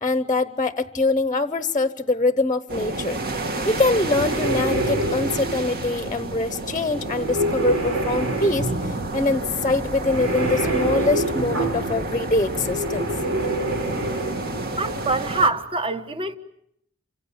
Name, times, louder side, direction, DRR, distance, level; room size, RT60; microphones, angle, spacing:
voice 1, 0.0-3.2 3.6-13.1, left 2 dB, 20° left, 1.0 m, -24 dB
sound 1, 2.7-15.5, right 2 dB, 45° right, 2.0 m, -31 dB
sound 2, 3.7-15.4, right 1 dB, 90° right, 6.1 m, -28 dB
voice 2, 14.8-16.4, right 3 dB, 25° right, 1.4 m, -24 dB
28.0 x 25.5 x 7.4 m
head